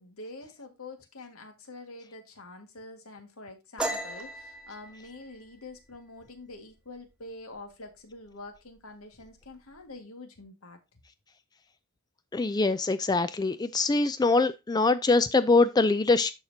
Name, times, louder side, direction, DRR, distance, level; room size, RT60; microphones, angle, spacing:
voice 1, 0.0-10.8, left 2 dB, 80° left, 1.8 m, -46 dB
sound 1, 3.8-7.2 7.6-7.9 8.3-8.8 9.0-9.8, right 1 dB, 5° right, 1.1 m, -37 dB
voice 2, 12.3-16.3, left 3 dB, 20° left, 0.3 m, -23 dB
12.5 x 4.3 x 2.7 m
head